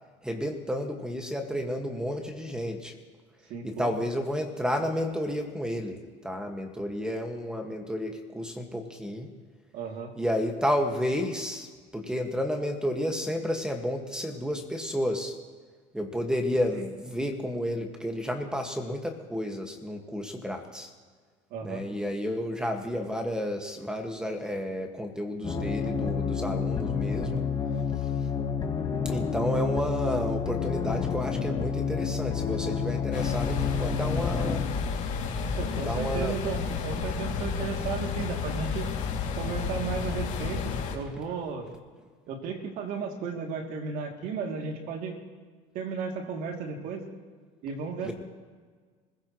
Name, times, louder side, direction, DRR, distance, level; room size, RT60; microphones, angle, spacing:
voice 1, 0.2-2.9 3.6-9.3 10.2-11.7 11.9-15.3 15.9-20.9 21.6-27.4 28.1-28.2 29.1-34.7 35.8-36.4 48.0-48.1, equal, 5° right, 4 dB, 1.9 m, -31 dB
voice 2, 3.5-3.9 9.7-10.1 16.7-16.9 21.5-21.8 35.6-38.9 39.4-41.7 42.3-45.2 45.7-47.0 47.6-48.1, right 5 dB, 65° right, 2 dB, 2.9 m, -34 dB
sound 1, 25.4-34.6, left 6 dB, 30° left, 2.0 m, -29 dB
sound 2, 33.1-41.0, left 5 dB, 55° left, 2.7 m, -31 dB
25.0 x 16.0 x 3.2 m, 1.5 s
supercardioid pair, 100°, 15 cm